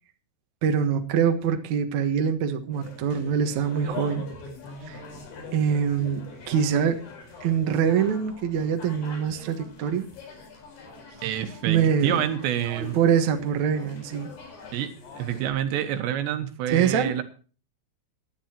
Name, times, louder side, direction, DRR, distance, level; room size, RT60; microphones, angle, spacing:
voice 1, 0.6-4.3 4.9-5.0 5.5-7.0 7.4-10.1 11.7-12.2 12.7-14.3 16.7-17.2, right 7 dB, 60° right, 6 dB, 2.0 m, -24 dB
sound 1, 2.7-15.5, left 3 dB, 85° left, 7.0 m, -43 dB
voice 2, 11.2-13.0 14.7-17.2, right 10 dB, 80° right, 9 dB, 3.5 m, -28 dB
19.0 x 11.5 x 2.9 m, 0.37 s
omnidirectional pair, 5.1 m